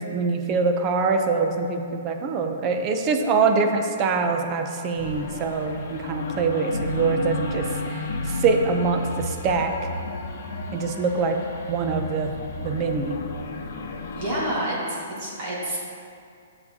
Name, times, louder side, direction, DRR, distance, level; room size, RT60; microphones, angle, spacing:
voice 1, 0.0-9.7 10.7-11.4 11.7-12.3 12.6-13.2, right 4 dB, 25° right, 5 dB, 0.5 m, -24 dB
sound 1, 5.0-14.5, left 2 dB, 60° left, 0.9 m, -32 dB
voice 2, 14.1-15.8, right 1 dB, 40° right, -5 dB, 1.6 m, -28 dB
9.3 x 6.9 x 2.8 m, 2.3 s
hypercardioid pair, 165°, 0 cm